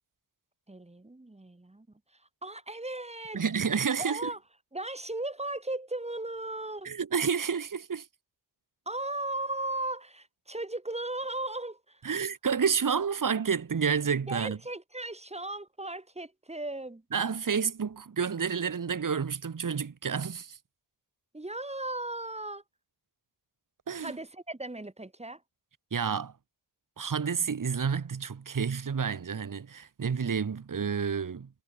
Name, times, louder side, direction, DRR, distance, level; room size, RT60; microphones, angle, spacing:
voice 1, 0.7-1.9 2.1-3.4 4.0-4.4 4.7-6.9 8.9-12.0 14.3-17.0 21.3-22.6 24.0-25.4, right 2 dB, 15° right, 1.8 m, -36 dB
voice 2, 3.3-4.3 6.8-8.1 12.0-14.6 17.1-20.6 23.9-24.1 25.9-26.3 27.0-31.5, right 6 dB, 45° right, 1.5 m, -30 dB
wide cardioid pair, 105°, 45 cm